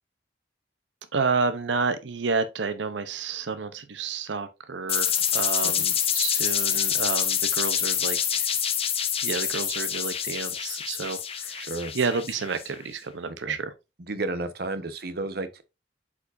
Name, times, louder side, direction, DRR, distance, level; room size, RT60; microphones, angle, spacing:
voice 1, 1.1-8.5 9.2-11.7 11.9-13.7, right 4 dB, 90° right, 0.7 m, -30 dB
sound 1, 4.9-12.7, left 9 dB, 35° left, 0.8 m, -27 dB
voice 2, 11.6-11.9 13.4-13.6 14.0-15.6, right 2 dB, 60° right, 1.0 m, -32 dB
8.2 x 5.0 x 2.5 m
head